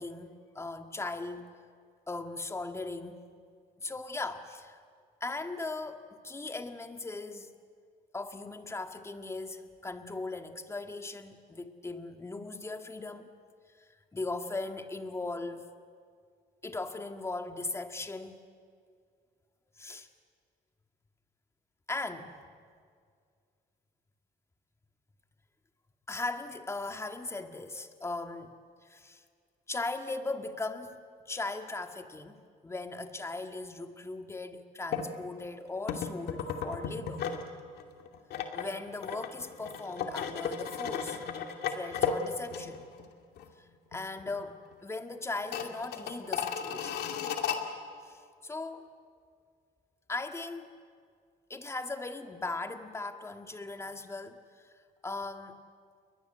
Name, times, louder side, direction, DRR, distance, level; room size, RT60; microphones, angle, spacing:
voice 1, 0.0-1.5 2.1-3.3 3.8-4.8 5.2-7.5 8.1-13.3 13.8-15.7 16.6-18.4 19.8-20.1 21.9-22.4 26.1-29.2 29.7-31.0 31.3-37.3 38.5-41.2 41.7-42.8 43.9-47.2 48.0-48.9 50.1-50.8 51.5-54.7 55.0-55.6, left 3 dB, 15° left, 6 dB, 1.9 m, -38 dB
sound 1, 34.9-35.1 35.9-37.5 37.8-43.1 43.4-43.5 43.9-44.4 44.7-44.8 45.4-47.6, left 7 dB, 70° left, 2.6 m, -35 dB
29.5 x 22.5 x 7.9 m, 2.2 s
cardioid pair, 110°, 17 cm